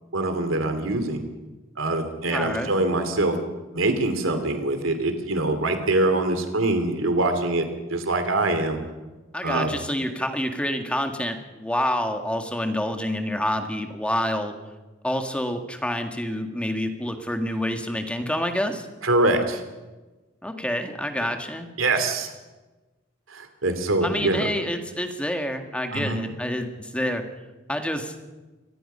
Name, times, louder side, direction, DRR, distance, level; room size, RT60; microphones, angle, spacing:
voice 1, 0.1-1.2 1.8-3.3 3.7-7.6 7.9-8.8 9.4-9.7 19.0-19.6 21.8-22.3 23.3-24.5 25.9-26.2, right 2 dB, 80° right, 7 dB, 2.8 m, -24 dB
voice 2, 2.3-2.8 9.3-14.5 15.0-18.9 20.4-21.7 24.0-27.2 27.7-28.1, left 1 dB, 5° left, 5 dB, 1.9 m, -28 dB
24.5 x 18.5 x 5.6 m, 1.2 s
head